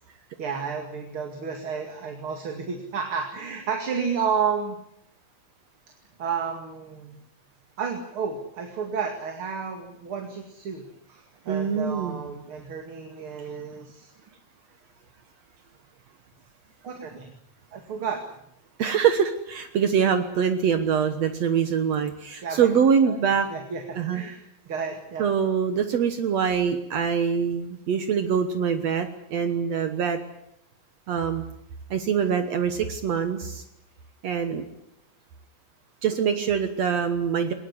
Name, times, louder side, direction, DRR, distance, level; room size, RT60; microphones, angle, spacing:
voice 1, 0.4-4.8 6.2-7.2 7.8-14.1 16.8-17.3 17.7-18.2 22.4-22.7 23.1-23.2 23.5-24.4 24.7-25.3, right 6 dB, 45° right, 4 dB, 2.9 m, -31 dB
voice 2, 11.5-12.2 18.8-23.5 24.0-24.2 25.2-30.2 31.1-31.4 31.9-33.6 34.2-34.6 36.0-37.5, right 7 dB, 65° right, 8 dB, 2.4 m, -24 dB
21.5 x 20.0 x 9.8 m, 0.78 s
omnidirectional pair, 3.4 m